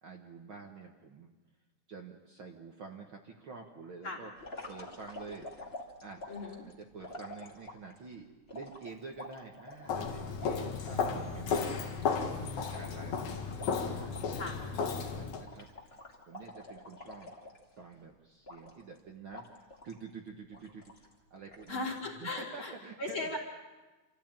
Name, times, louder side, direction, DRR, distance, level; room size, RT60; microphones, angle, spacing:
voice 1, 0.0-1.3 1.9-4.3 4.7-5.5 6.0-6.2 6.6-8.3 8.5-11.7 12.2-13.6 13.9-14.1 15.2-15.7 16.2-17.3 17.8-20.9 21.3-21.9 22.2-23.2, right 4 dB, 50° right, 1 dB, 2.0 m, -48 dB
sound 1, 4.4-8.0 8.5-11.0 11.4-11.5 11.7-14.6 14.9-15.1 15.4-17.9 18.4-19.0 19.3-20.0 20.5-21.1 21.5-22.0, left 2 dB, 20° left, 2.5 m, -48 dB
voice 2, 6.3-6.6 12.4-13.2 14.3-14.6 21.7-22.7 23.0-23.4, left 2 dB, 45° left, -2 dB, 4.6 m, -38 dB
Walk footsteps, 9.9-15.4, left 5 dB, 70° left, 3.0 m, -34 dB
27.0 x 15.0 x 9.0 m, 1.2 s
omnidirectional pair, 3.4 m